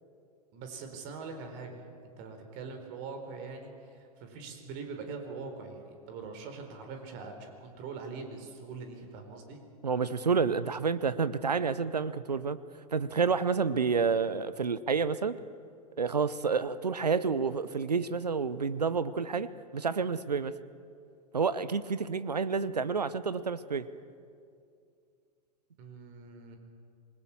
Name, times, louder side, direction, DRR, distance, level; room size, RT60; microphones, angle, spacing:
voice 1, 0.5-1.8 2.2-9.6 25.8-26.6, right 4 dB, 45° right, 5 dB, 4.3 m, -43 dB
voice 2, 9.8-12.6 12.9-15.4 16.0-20.5 21.3-23.9, right 5 dB, 85° right, 16 dB, 0.9 m, -29 dB
26.5 x 20.5 x 7.2 m, 2.4 s
figure-of-eight pair, 100°, 20 cm